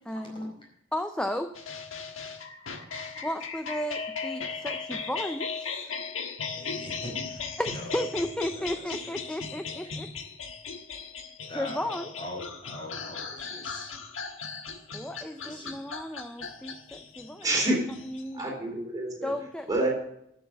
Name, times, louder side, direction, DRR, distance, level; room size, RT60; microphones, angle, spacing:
voice 1, 0.1-0.5 0.9-1.5 3.2-5.9 7.6-10.1 11.5-12.1 14.9-17.5 18.0-18.5 19.2-19.7, left 1 dB, 5° left, 7 dB, 0.4 m, -34 dB
sound 1, 1.5-18.4, left 5 dB, 85° left, 1.4 m, -37 dB
voice 2, 6.5-7.9 8.5-9.4 11.5-13.9 15.4-15.8, left 1 dB, 25° left, -2 dB, 4.8 m, -42 dB
voice 3, 17.4-17.8 18.3-19.3 19.7-19.9, right 1 dB, 20° right, -2 dB, 3.9 m, -27 dB
11.5 x 7.1 x 7.3 m, 0.75 s
head